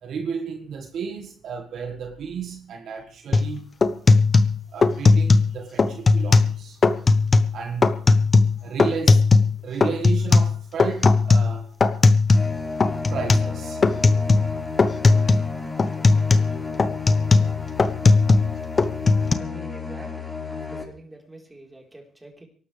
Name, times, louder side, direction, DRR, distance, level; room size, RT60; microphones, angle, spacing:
voice 1, 0.0-4.0 4.7-6.8 7.5-8.0 8.6-9.2 9.6-12.0 13.1-13.9 15.5-15.6, right 6 dB, 65° right, 1.9 m, -33 dB
sound 1, 3.3-3.5 3.8-5.5 5.8-6.5 6.8-7.5 7.8-9.5 9.8-12.5 12.8-13.5 13.8-14.5 14.8-15.5 15.8-18.5 18.8-19.3, left 3 dB, 35° left, 1.1 m, -17 dB
sound 2, 12.3-20.8, left 4 dB, 15° left, 4.7 m, -32 dB
voice 2, 19.4-22.5, right 1 dB, 15° right, 4.3 m, -45 dB
23.5 x 12.5 x 3.5 m
cardioid pair, 90°, 0 cm